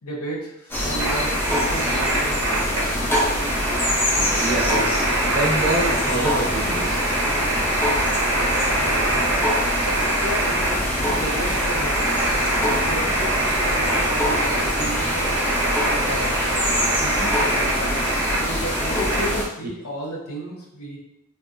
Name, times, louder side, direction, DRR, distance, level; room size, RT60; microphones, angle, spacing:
voice 1, 0.0-2.5 8.7-9.5 9.8-12.0 12.7-13.4 13.7-15.5 15.8-16.5 17.0-21.0, right 1 dB, 90° left, -1 dB, 0.7 m, -33 dB
sound 1, 0.7-19.4, left 1 dB, 10° left, 0.4 m, -25 dB
sound 2, 1.0-19.3, right 1 dB, 80° right, 0.7 m, -24 dB
voice 2, 4.4-7.0, right 2 dB, 40° right, -1 dB, 0.5 m, -26 dB
2.6 x 2.1 x 2.4 m, 0.82 s
head